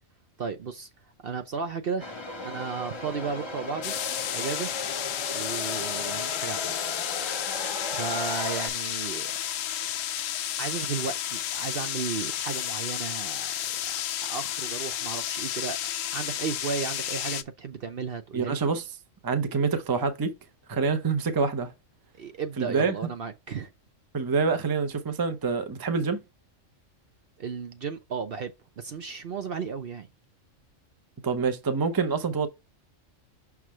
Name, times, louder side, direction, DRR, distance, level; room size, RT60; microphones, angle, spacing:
voice 1, 0.4-0.9 1.2-2.2 2.4-4.8 5.3-6.9 7.6-9.3 10.6-13.5 13.9-14.0 14.2-15.8 16.1-18.6 22.2-23.7 27.4-30.1, right 5 dB, 55° right, 0.8 m, -34 dB
sound 1, 2.0-8.7, left 2 dB, 25° left, 0.9 m, -36 dB
sound 2, 3.8-17.4, left 11 dB, 80° left, 1.0 m, -32 dB
voice 2, 18.3-18.8 19.2-20.3 20.7-21.7 22.6-23.0 24.1-26.2 31.2-32.5, right 5 dB, 20° right, 0.6 m, -26 dB
6.3 x 3.6 x 4.4 m
omnidirectional pair, 1.4 m